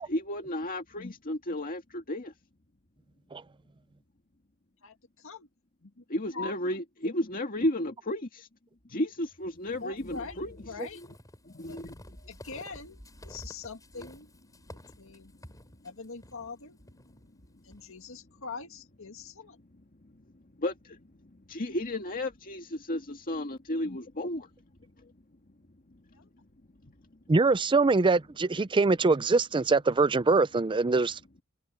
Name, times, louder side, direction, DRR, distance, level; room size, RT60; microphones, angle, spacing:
voice 1, 0.0-2.3 6.1-8.5 8.9-10.6 11.4-12.0 14.0-14.1 20.0-20.1 20.6-21.0 21.3-24.5 25.0-25.1 26.8-26.9, left 1 dB, 40° left, 2.0 m, -33 dB
voice 2, 4.8-5.5 5.8-6.6 7.0-7.1 9.7-10.4 10.6-11.0 11.6-11.8 12.3-14.3 15.0-15.3 15.8-16.8 17.6-19.6 26.1-26.3, left 4 dB, 65° left, 2.1 m, -43 dB
sound 1, 10.0-17.9, left 1 dB, 15° left, 7.9 m, -51 dB
voice 3, 27.3-31.2, right 3 dB, 20° right, 0.5 m, -23 dB
head